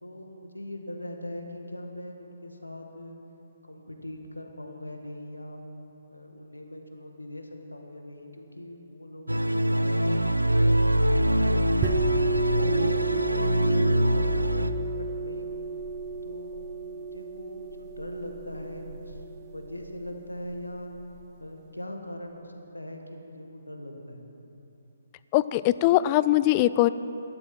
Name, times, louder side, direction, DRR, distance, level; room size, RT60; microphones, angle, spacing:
voice 1, 0.0-3.2 3.7-5.6 6.1-11.7 12.2-15.7 16.2-16.6 16.9-20.9 21.4-24.3, left 1 dB, 85° left, 3 dB, 1.6 m, -41 dB
sound 1, 9.3-14.7, equal, 85° right, 0.5 m, -24 dB
sound 2, 11.8-21.2, right 4 dB, 20° right, 1.0 m, -32 dB
voice 2, 25.3-26.9, left 15 dB, 25° left, 16 dB, 0.3 m, -21 dB
13.0 x 11.5 x 6.0 m, 3.0 s
figure-of-eight pair, 135°, 0 cm